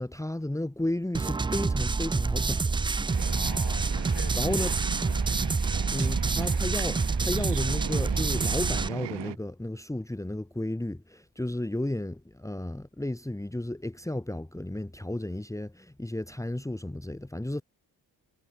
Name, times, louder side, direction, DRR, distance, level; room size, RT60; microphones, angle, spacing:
voice 1, 0.0-2.6 4.3-4.7 5.9-17.6, left 1 dB, 5° left, 1.8 m, -33 dB
sound 1, 1.1-8.9, right 4 dB, 10° right, 0.4 m, -27 dB
sound 2, 3.1-9.4, right 12 dB, 75° right, 2.7 m, -38 dB
voice 2, 3.3-4.3 5.1-5.9, left 10 dB, 70° left, 5.9 m, -46 dB
supercardioid pair, 65°, 43 cm